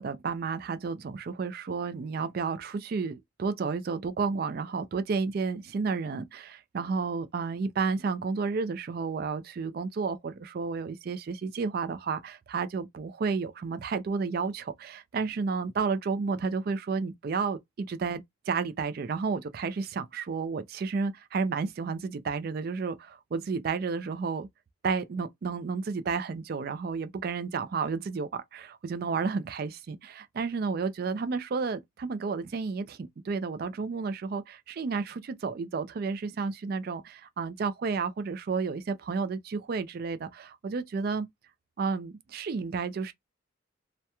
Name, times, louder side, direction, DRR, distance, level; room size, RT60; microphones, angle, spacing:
voice 1, 0.0-24.5 24.8-41.3 41.8-43.1, right 5 dB, 45° right, 0.3 m, -31 dB
2.8 x 2.1 x 2.2 m
head